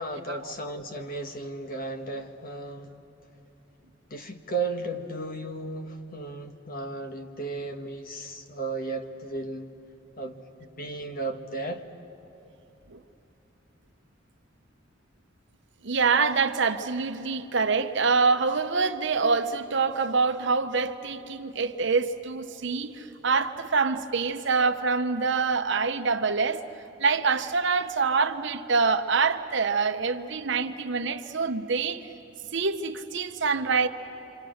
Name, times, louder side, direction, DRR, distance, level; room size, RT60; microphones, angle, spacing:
voice 1, 0.0-2.9 4.1-9.7 10.2-11.8, right 3 dB, 50° left, 1.4 m, -35 dB
voice 2, 15.8-26.6 27.0-32.1 32.5-33.9, right 4 dB, 65° right, 0.9 m, -25 dB
26.5 x 26.5 x 6.4 m
head